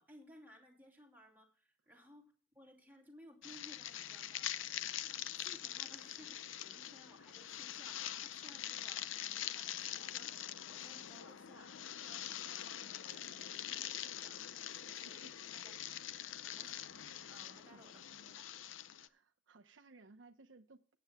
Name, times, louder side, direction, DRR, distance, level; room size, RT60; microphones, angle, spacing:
voice 1, 0.0-4.7 5.0-10.3 10.7-18.5 19.0-19.2, equal, 10° right, 2.6 m, -61 dB
sound 1, 3.4-19.1, left 11 dB, 85° left, 0.5 m, -44 dB
voice 2, 19.1-21.0, right 3 dB, 75° right, 0.7 m, -61 dB
21.5 x 8.6 x 2.2 m
head